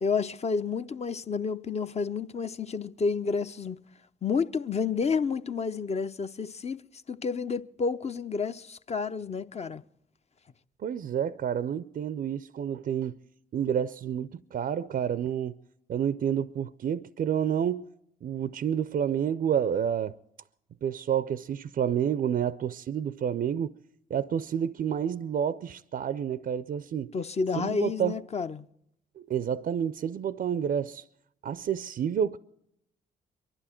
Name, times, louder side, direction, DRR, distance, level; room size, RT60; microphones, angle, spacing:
voice 1, 0.0-3.8 4.2-6.8 7.1-9.8 27.1-28.7, left 5 dB, 35° left, 0.6 m, -30 dB
voice 2, 10.8-13.2 13.5-15.6 15.9-17.9 18.2-20.2 20.8-23.7 24.1-27.1 27.6-28.2 29.2-31.0 31.4-32.4, right 8 dB, 50° right, 0.5 m, -29 dB
23.5 x 11.5 x 4.4 m
supercardioid pair, 55°, 20 cm